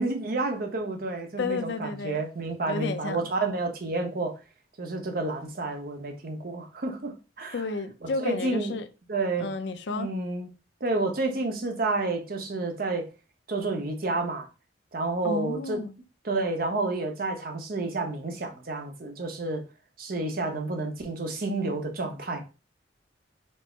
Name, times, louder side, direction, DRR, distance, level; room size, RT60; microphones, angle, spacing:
voice 1, 0.0-4.4 4.8-7.6 8.0-8.8 9.1-9.5 9.9-10.5 10.8-13.1 13.5-14.5 14.9-15.8 16.2-19.6 20.0-22.4, right 2 dB, 50° right, 0.8 m, -30 dB
voice 2, 1.4-2.2 2.7-3.2 7.5-8.9 9.4-10.1 15.2-15.9, left 3 dB, 70° left, 0.5 m, -32 dB
4.4 x 2.0 x 4.4 m
head